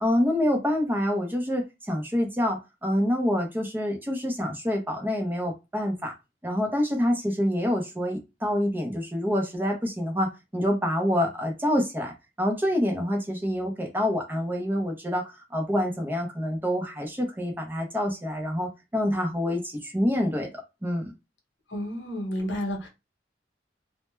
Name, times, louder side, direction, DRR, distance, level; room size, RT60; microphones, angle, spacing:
voice 1, 0.0-6.1 6.4-20.5 20.8-21.1, left 1 dB, 10° right, 0.5 m, -27 dB
voice 2, 21.7-22.9, equal, 80° left, 0.9 m, -31 dB
2.2 x 2.1 x 3.0 m
head